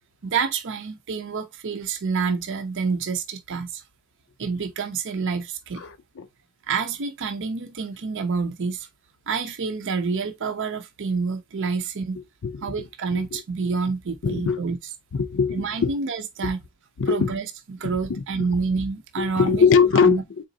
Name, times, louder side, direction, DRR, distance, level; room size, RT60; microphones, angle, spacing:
voice 1, 0.2-3.8 4.4-5.9 6.7-8.9 9.3-12.2 12.6-14.8 15.5-16.6 17.1-17.5 17.7-19.7 20.0-20.4, right 5 dB, 55° right, 0.5 m, -28 dB
voice 2, 5.8-6.3 12.4-12.7 13.1-13.4 14.2-14.6 15.1-15.9 17.0-17.3 17.8-18.5 19.2-20.2, left 6 dB, 55° left, 0.5 m, -22 dB
4.0 x 3.7 x 2.6 m
head